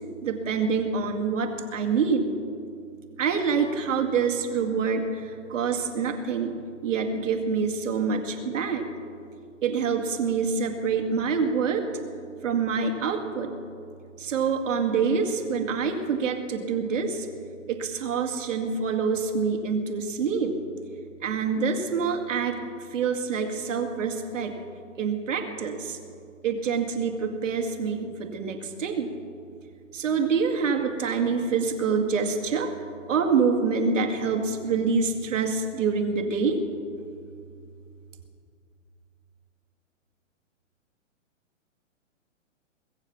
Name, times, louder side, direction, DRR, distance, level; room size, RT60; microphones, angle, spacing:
voice 1, 0.2-2.3 3.2-6.5 6.8-8.9 9.6-11.8 12.4-13.5 14.2-17.3 17.7-20.6 21.2-22.6 22.9-24.5 25.0-26.0 26.4-29.1 29.9-32.7 33.1-36.6, right 5 dB, 70° right, 4 dB, 2.2 m, -26 dB
22.0 x 7.5 x 7.3 m, 2.3 s
hypercardioid pair, 125°, 39 cm